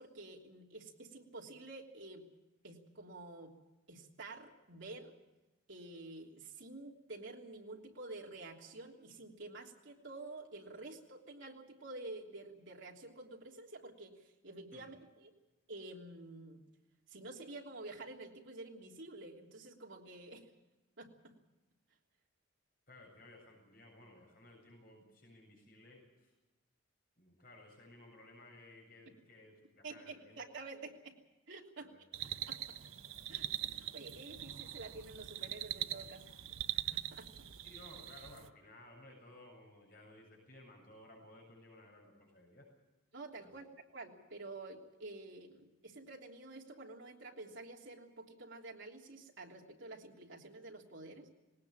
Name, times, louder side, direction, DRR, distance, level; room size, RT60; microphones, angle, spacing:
voice 1, 0.0-2.2 2.6-3.5 3.9-5.1 5.7-15.3 15.7-16.6 17.1-20.5 21.0-21.3 29.8-31.2 31.5-31.9 32.5-32.7 33.3-36.2 36.7-37.3 43.1-51.3, right 2 dB, 65° right, 0 dB, 3.3 m, -49 dB
voice 2, 22.9-26.3 27.2-30.4 31.8-32.0 37.6-42.7 43.4-43.5, left 1 dB, 45° left, 0 dB, 7.6 m, -58 dB
sound 1, 32.1-38.5, right 11 dB, 90° right, 0.9 m, -42 dB
20.0 x 19.0 x 8.7 m, 1.1 s
head